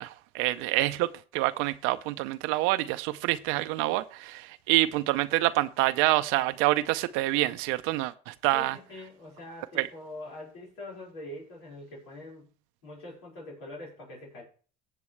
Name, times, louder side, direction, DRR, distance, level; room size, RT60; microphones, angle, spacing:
voice 1, 0.0-8.8 9.8-9.9, right 17 dB, 80° right, 0.6 m, -27 dB
voice 2, 8.5-12.5 12.8-14.4, left 1 dB, 85° left, 4.8 m, -43 dB
16.5 x 7.5 x 3.2 m
supercardioid pair, 90°, 21 cm